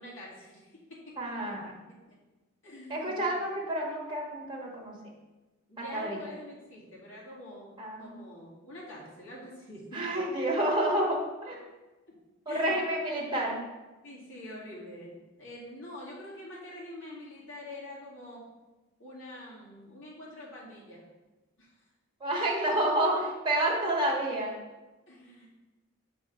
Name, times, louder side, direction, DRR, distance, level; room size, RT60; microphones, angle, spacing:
voice 1, 0.0-1.2 1.4-1.5 2.6-3.3 5.7-7.7 8.0-10.0 12.1-12.2 12.5-12.8 14.0-18.5 19.0-21.0 21.6-21.7 25.1-25.5, left 1 dB, 60° left, -6 dB, 2.2 m, -45 dB
voice 2, 1.2-1.7 2.9-4.9 5.8-6.2 7.8-8.2 9.9-11.6 12.4-13.6 22.2-24.5, right 1 dB, 20° right, -4 dB, 1.3 m, -29 dB
6.3 x 3.5 x 5.0 m, 1.1 s
head